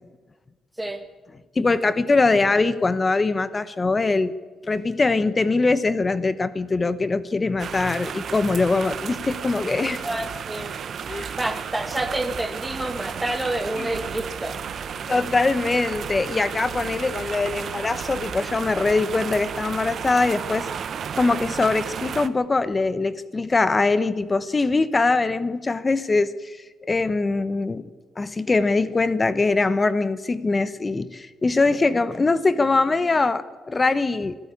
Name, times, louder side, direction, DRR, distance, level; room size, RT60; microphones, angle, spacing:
voice 1, 1.6-4.3 4.7-10.1 11.1-11.3 13.8-13.9 15.1-20.7 21.1-26.6 26.9-27.8 28.2-34.4, left 3 dB, 25° left, 14 dB, 1.0 m, -22 dB
sound 1, 7.6-22.3, right 7 dB, 55° right, 1.0 m, -33 dB
voice 2, 10.0-10.7 11.4-14.6, right 1 dB, 10° right, 6 dB, 2.2 m, -28 dB
sound 2, 11.9-19.9, right 5 dB, 80° right, 2.4 m, -43 dB
24.0 x 13.0 x 8.6 m, 1.4 s
cardioid pair, 90°, 0 cm